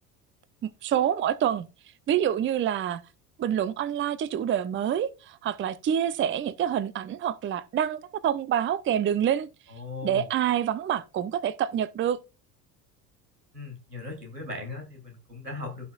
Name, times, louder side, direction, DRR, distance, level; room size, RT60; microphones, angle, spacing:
voice 1, 0.6-1.7 2.1-3.0 3.4-9.5 10.0-12.2, right 10 dB, 25° right, 0.7 m, -27 dB
voice 2, 9.7-10.3 13.5-15.9, left 3 dB, 90° right, 3.0 m, -38 dB
16.5 x 5.7 x 2.4 m
figure-of-eight pair, 65°, 47 cm